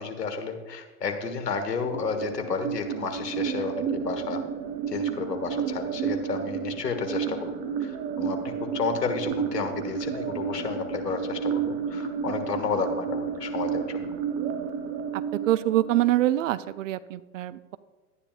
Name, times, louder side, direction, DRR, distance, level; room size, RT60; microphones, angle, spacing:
voice 1, 0.0-4.4 4.9-7.5 7.8-14.0, left 5 dB, 85° left, 6 dB, 1.6 m, -31 dB
sound 1, 1.8-16.8, right 7 dB, 35° right, 0.9 m, -31 dB
voice 2, 15.5-17.8, right 14 dB, 55° right, 16 dB, 0.5 m, -25 dB
12.5 x 9.9 x 2.5 m, 1.3 s
hypercardioid pair, 115°, 47 cm